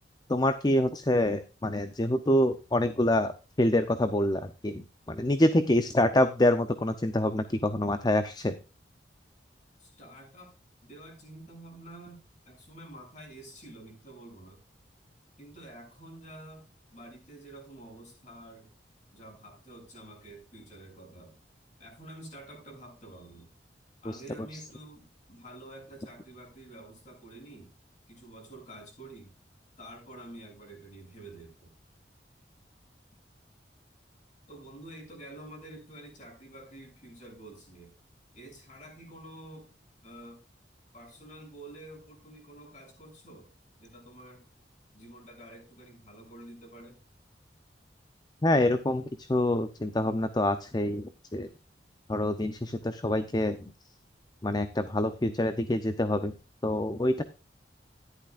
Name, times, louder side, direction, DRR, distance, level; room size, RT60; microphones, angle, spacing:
voice 1, 0.3-3.3 3.6-8.6 24.1-24.2 48.4-51.5 52.1-53.6 54.4-56.3 56.6-57.2, left 1 dB, 25° left, 0.7 m, -26 dB
voice 2, 9.8-10.5 10.8-12.2 12.5-14.6 15.4-16.6 16.9-18.7 19.1-21.4 21.8-23.5 24.0-27.7 28.1-29.3 29.8-31.7 34.5-37.9 38.3-39.7 40.0-40.4 40.9-43.5 43.8-44.4 44.9-47.0, right 1 dB, 45° left, 7.0 m, -48 dB
13.5 x 11.0 x 2.4 m
head